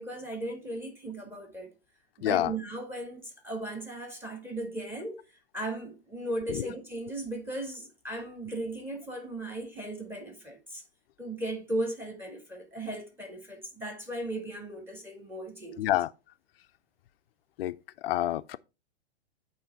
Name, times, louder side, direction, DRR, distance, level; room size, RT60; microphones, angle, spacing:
voice 1, 0.0-1.7 2.2-5.2 5.5-10.8 11.2-15.8, right 1 dB, 5° right, 1.8 m, -37 dB
voice 2, 2.2-2.5 6.5-6.7 15.8-16.1 17.6-18.6, left 14 dB, 60° left, 0.5 m, -28 dB
8.9 x 3.3 x 4.5 m
hypercardioid pair, 125°, 33 cm